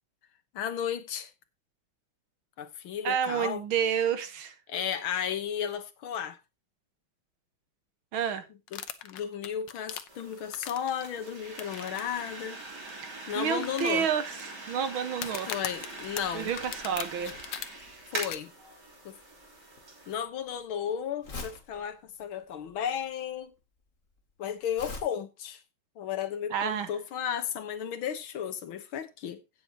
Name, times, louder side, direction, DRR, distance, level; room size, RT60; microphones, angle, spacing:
voice 1, 0.5-1.3 2.6-3.6 4.7-6.4 8.7-12.6 13.3-14.1 15.5-16.5 18.1-18.5 19.1-19.2 20.1-23.5 24.4-25.6 26.0-29.4, left 8 dB, 85° left, 2.0 m, -34 dB
voice 2, 3.0-4.6 8.1-8.4 13.3-15.5 16.3-17.3 26.5-26.9, right 8 dB, 80° right, 2.0 m, -29 dB
Crumbling Can, 8.7-11.0 11.6-12.0 12.3-12.4 12.9-13.0 13.6-14.4 15.1-17.7 18.2-18.4, left 10 dB, 65° left, 1.5 m, -38 dB
sound 1, 10.1-20.1, right 2 dB, 55° right, 3.9 m, -43 dB
Crumpling crinkling, 15.7-25.0, left 3 dB, 40° left, 2.3 m, -47 dB
16.5 x 7.4 x 2.9 m
omnidirectional pair, 2.2 m